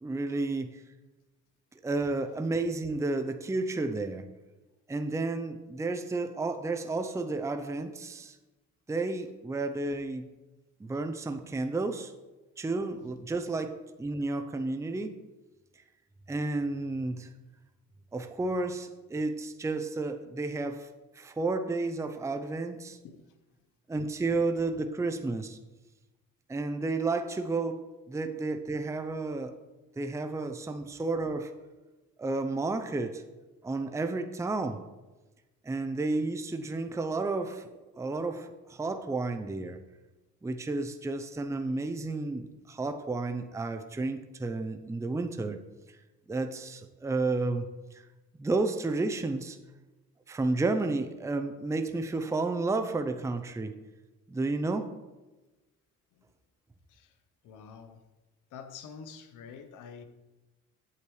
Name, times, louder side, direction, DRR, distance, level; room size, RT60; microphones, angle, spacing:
voice 1, 0.0-0.8 1.8-4.3 4.9-8.4 8.9-10.3 10.8-12.1 12.6-15.2 16.3-17.3 18.1-20.9 21.2-23.0 23.9-25.6 26.5-29.6 30.0-31.5 32.2-33.2 33.6-34.8 35.6-37.7 38.0-39.8 40.4-45.6 46.3-48.0 48.4-49.6 50.3-53.8 54.3-54.9, right 3 dB, 10° right, 7 dB, 0.5 m, -31 dB
voice 2, 57.4-58.1 58.5-60.0, left 6 dB, 90° left, 9 dB, 0.9 m, -47 dB
8.4 x 8.4 x 3.2 m, 1.1 s
cardioid pair, 90°, 30 cm